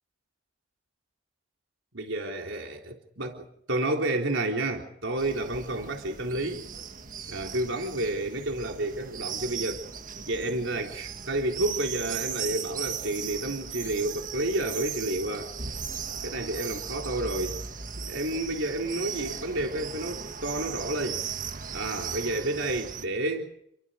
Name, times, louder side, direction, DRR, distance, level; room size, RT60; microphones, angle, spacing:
voice 1, 1.9-6.7 7.3-9.9 10.2-15.5 16.2-17.6 18.0-21.2 21.7-23.5, right 1 dB, 80° right, 1 dB, 3.7 m, -30 dB
sound 1, 5.2-23.1, right 7 dB, 40° right, 1.5 m, -37 dB
29.5 x 23.5 x 5.2 m, 0.70 s
head